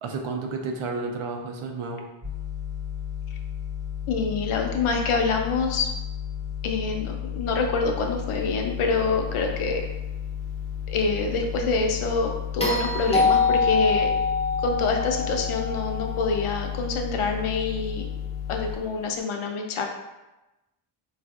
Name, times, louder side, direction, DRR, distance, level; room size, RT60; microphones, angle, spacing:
voice 1, 0.0-2.1, right 3 dB, 80° right, 3 dB, 0.6 m, -31 dB
sound 1, 2.2-18.8, left 9 dB, 25° right, 0.9 m, -33 dB
voice 2, 4.1-5.9 6.6-9.8 10.9-14.2 14.6-18.1 18.5-19.9, left 4 dB, 90° left, 2 dB, 0.6 m, -26 dB
sound 2, 12.6-16.9 19.1-19.2, left 4 dB, 15° left, 0.3 m, -25 dB
4.2 x 2.4 x 2.4 m, 1.0 s
wide cardioid pair, 170°, 49 cm